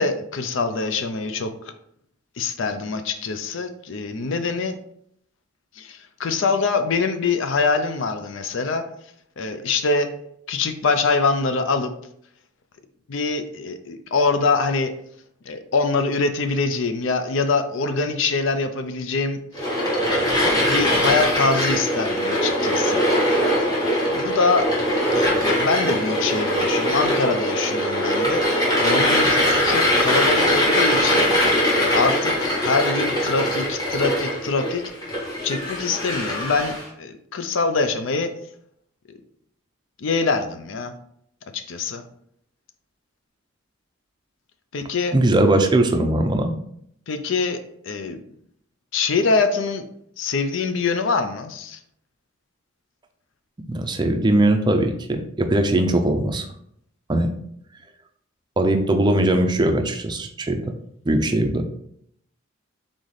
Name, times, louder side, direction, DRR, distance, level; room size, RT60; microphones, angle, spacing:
voice 1, 0.0-1.5 2.4-4.8 5.8-8.8 9.4-10.1 10.5-11.9 13.1-14.9 15.5-19.4 20.7-23.1 23.8-24.7 25.1-28.4 28.8-31.3 31.8-34.8 35.4-38.3 40.0-40.9 41.5-42.0 44.7-45.2 47.1-47.6 47.9-48.2 48.9-49.8 50.2-51.8, left 4 dB, 65° left, 8 dB, 0.5 m, -24 dB
sound 1, 19.5-36.8, equal, 20° left, 1.2 m, -21 dB
voice 2, 45.1-46.6 53.7-56.5 57.1-57.3 58.6-60.6 61.1-61.6, right 1 dB, 20° right, 5 dB, 0.4 m, -20 dB
4.0 x 3.7 x 3.2 m, 0.70 s
head